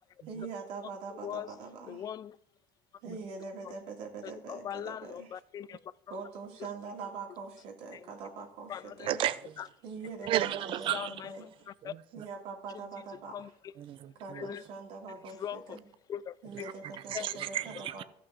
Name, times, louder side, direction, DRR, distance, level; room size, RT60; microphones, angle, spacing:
voice 1, 0.3-2.1 3.0-5.4 6.1-9.2 9.8-10.3 10.6-10.9 11.2-11.5 12.1-13.5 14.2-15.9 16.4-17.6 17.9-18.0, right 4 dB, 70° right, 2.7 m, -43 dB
voice 2, 1.2-1.5 1.9-2.4 4.2-5.8 7.9-8.0 8.7-9.1 10.9-11.1 11.8-11.9 12.7-12.9 13.3-13.5 14.3-14.6 15.4-15.8 16.1-16.7 17.1-17.3, left 9 dB, 35° left, 0.4 m, -40 dB
voice 3, 9.0-9.7 10.3-12.3 13.7-14.5 16.5-18.0, right 12 dB, 50° right, 0.6 m, -35 dB
14.0 x 5.9 x 4.9 m
supercardioid pair, 115°, 11 cm